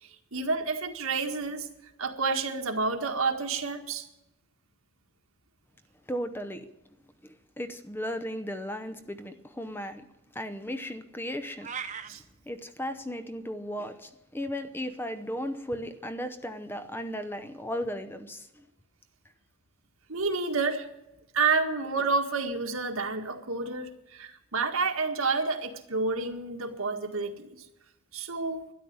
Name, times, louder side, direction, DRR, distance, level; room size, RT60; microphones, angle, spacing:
voice 1, 0.3-1.7 2.0-4.1 12.1-12.2 20.1-20.9 21.3-27.6 28.1-28.7, right 4 dB, 75° right, 1.7 m, -29 dB
voice 2, 6.1-6.7 7.2-10.1 10.3-11.7 12.5-18.6, equal, 10° left, 0.7 m, -36 dB
sound 1, 11.6-12.1, right 7 dB, 35° right, 0.8 m, -36 dB
12.5 x 11.0 x 9.5 m
head